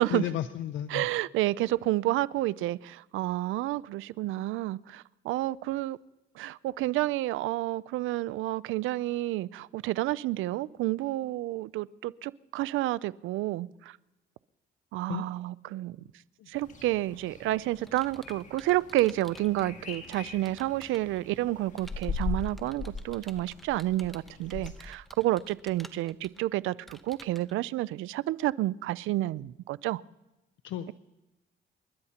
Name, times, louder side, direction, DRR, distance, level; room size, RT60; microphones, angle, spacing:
voice 1, 0.1-1.1 15.1-15.2 16.4-16.5 30.6-30.9, left 11 dB, 75° left, 0.6 m, -33 dB
voice 2, 0.9-6.0 6.4-14.0 14.9-16.0 16.5-30.0, right 16 dB, 85° right, 0.4 m, -30 dB
sound 1, 16.5-24.9, left 4 dB, 40° left, 1.6 m, -40 dB
Computer keyboard, 17.1-21.2 21.8-27.5, equal, ahead, 0.9 m, -53 dB
29.0 x 12.0 x 2.9 m
cardioid pair, 90°, 20 cm